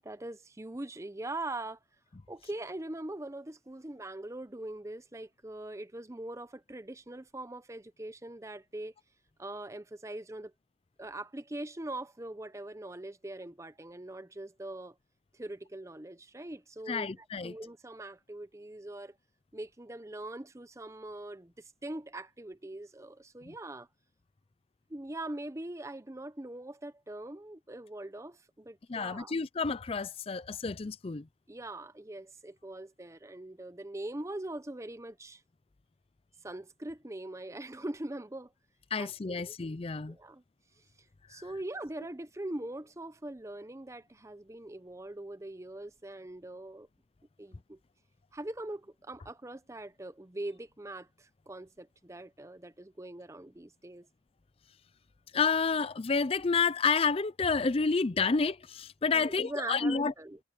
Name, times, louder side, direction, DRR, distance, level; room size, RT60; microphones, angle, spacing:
voice 1, 0.0-1.8 2.3-8.9 9.4-10.5 11.0-15.0 15.3-19.2 19.5-23.9 24.9-29.4 31.5-35.4 36.4-38.5 39.0-39.6 40.1-40.4 41.3-46.9 47.4-47.8 48.3-54.1 59.1-60.4, right 1 dB, 15° right, 0.7 m, -42 dB
voice 2, 16.9-17.5 28.9-31.2 38.9-40.2 55.3-60.1, left 4 dB, 30° left, 0.5 m, -29 dB
head